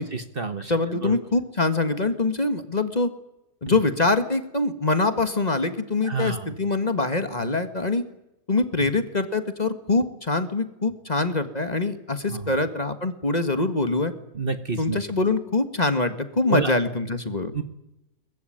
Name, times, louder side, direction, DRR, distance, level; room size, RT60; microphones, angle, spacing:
voice 1, 0.1-0.7 1.0-1.1 3.7-3.8 6.0-6.5 12.3-12.5 14.3-15.0 16.5-16.7 17.5-17.6, right 4 dB, 40° right, 9 dB, 1.5 m, -28 dB
voice 2, 0.7-3.1 3.6-8.0 8.5-14.1 14.8-17.5, left 3 dB, 30° left, 9 dB, 1.8 m, -24 dB
22.5 x 21.0 x 9.4 m, 0.89 s
omnidirectional pair, 1.5 m